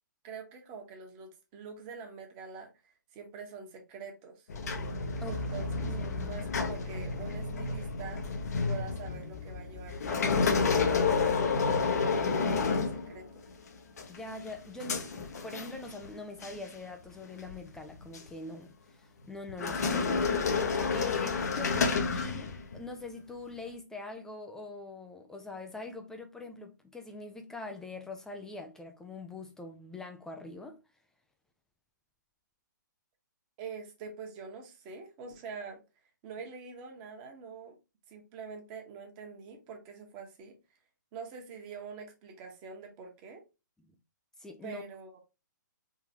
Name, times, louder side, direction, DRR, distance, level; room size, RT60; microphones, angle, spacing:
voice 1, 0.2-4.5 5.3-8.2 8.7-13.5 33.6-35.8 36.2-37.7 38.1-40.6 41.1-43.4 44.6-45.2, right 5 dB, 25° right, 1.3 m, -45 dB
sound 1, 4.5-13.5 14.0-16.1 16.4-16.7 17.4-18.3 19.5-22.9, left 4 dB, 55° left, 0.9 m, -30 dB
voice 2, 5.2-6.3 14.1-20.3 20.9-30.8 44.4-44.8, left 3 dB, 5° left, 0.5 m, -43 dB
4.4 x 3.9 x 2.8 m
figure-of-eight pair, 130°, 10 cm